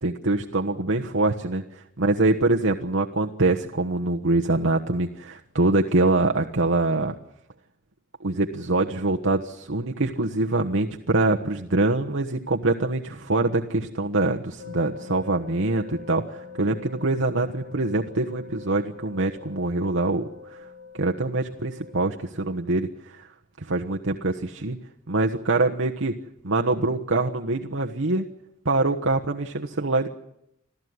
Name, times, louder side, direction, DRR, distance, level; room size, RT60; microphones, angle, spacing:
voice 1, 0.0-7.1 8.2-20.7 20.9-23.3 23.6-24.8 25.1-26.1 26.4-28.3 28.6-30.1, right 2 dB, 75° right, 2 dB, 1.3 m, -24 dB
sound 1, 14.6-21.9, left 5 dB, 65° left, 4.1 m, -43 dB
26.5 x 15.0 x 9.6 m, 0.79 s
head